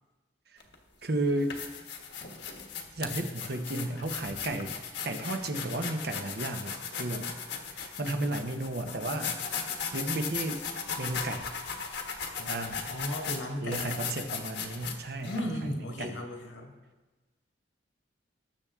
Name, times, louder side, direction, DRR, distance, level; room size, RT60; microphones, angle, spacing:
sound 1, 0.6-0.7 1.3-15.4, left 6 dB, 65° left, 1.3 m, -37 dB
voice 1, 1.0-1.6 2.9-4.7 5.0-7.3 7.7-9.4 9.9-10.6 11.0-11.5 12.5-12.9 13.6-15.7 16.0-16.2, right 1 dB, 55° right, 6 dB, 1.0 m, -33 dB
voice 2, 12.4-14.0 15.2-16.7, equal, 85° left, 2 dB, 2.0 m, -36 dB
20.0 x 7.1 x 3.7 m, 1.2 s
head